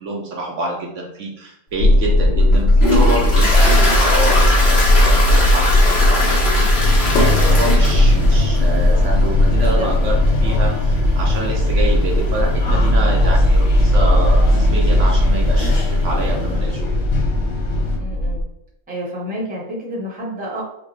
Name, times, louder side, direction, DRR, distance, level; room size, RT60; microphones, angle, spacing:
voice 1, 0.0-16.9, right 2 dB, 65° right, -1 dB, 0.9 m, -27 dB
sound 1, 1.8-18.4, left 1 dB, 70° left, 0.5 m, -16 dB
Toilet flush, 1.8-16.5, left 1 dB, 50° left, 1.3 m, -24 dB
sound 2, 6.7-18.0, left 4 dB, 85° left, 1.4 m, -26 dB
voice 2, 7.3-7.8 9.5-9.9 18.0-18.4 18.9-20.6, equal, 5° right, -4 dB, 0.9 m, -29 dB
5.1 x 2.2 x 3.1 m, 0.84 s
omnidirectional pair, 1.5 m